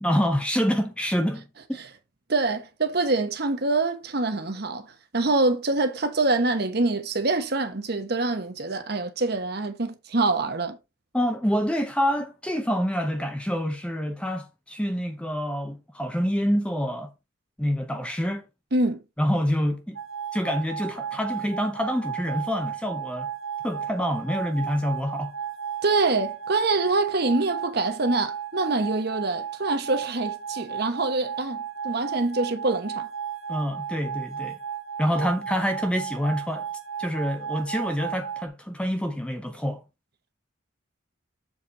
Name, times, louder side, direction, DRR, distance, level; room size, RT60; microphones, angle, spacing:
voice 1, 0.0-1.8 11.1-17.1 17.6-18.4 19.2-20.0 20.3-23.3 23.6-25.3 33.5-34.6 35.0-36.7 37.0-39.8, equal, 5° left, 0.7 m, -27 dB
voice 2, 2.3-4.9 5.1-10.8 18.7-19.0 25.8-31.6 31.8-33.1 35.1-35.3, right 3 dB, 50° right, 1.1 m, -25 dB
sound 1, 20.0-38.5, right 8 dB, 75° right, 1.0 m, -34 dB
7.3 x 4.2 x 4.2 m
head